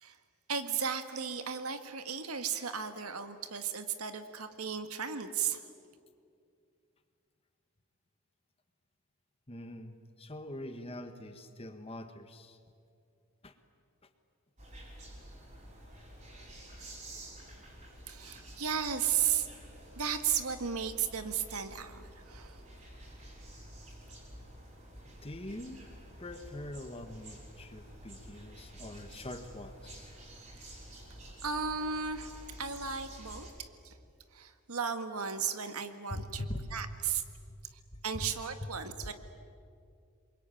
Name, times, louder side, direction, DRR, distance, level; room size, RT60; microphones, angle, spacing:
voice 1, 0.5-5.7 18.1-19.5 19.9-22.6 31.4-33.9 34.3-36.5 36.7-37.2 38.0-39.1, right 7 dB, 85° right, 8 dB, 1.7 m, -35 dB
voice 2, 9.5-12.6 13.4-13.6 14.0-14.1 25.0-25.8 26.2-30.1 36.1-36.7 37.5-37.6 37.9-38.3 38.6-38.7 39.0-39.1, left 1 dB, 25° left, 8 dB, 1.5 m, -43 dB
sound 1, 14.6-33.5, right 1 dB, 35° right, 5.9 m, -50 dB
27.5 x 23.0 x 9.2 m, 2.4 s
head